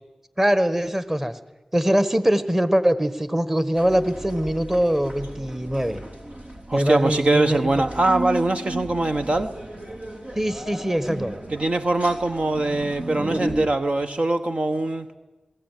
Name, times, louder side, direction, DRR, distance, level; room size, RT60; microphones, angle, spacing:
voice 1, 0.4-1.3 1.7-6.0 6.7-7.8 10.3-11.3, equal, 15° right, 12 dB, 1.5 m, -22 dB
sound 1, 3.7-13.7, right 1 dB, 75° right, 3.5 m, -34 dB
voice 2, 6.7-9.5 11.5-15.1, right 2 dB, 60° right, 7 dB, 1.1 m, -22 dB
21.5 x 15.5 x 9.2 m, 1.2 s
cardioid pair, 40°, 2 cm